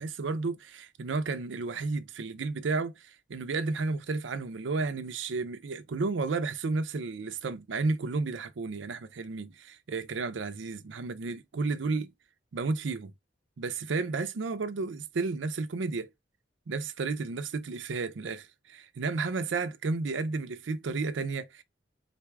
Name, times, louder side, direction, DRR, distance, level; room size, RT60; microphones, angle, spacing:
voice 1, 0.0-12.1 12.5-13.1 13.6-16.1 16.7-21.6, right 3 dB, 75° right, 0.5 m, -32 dB
4.0 x 2.3 x 4.5 m
head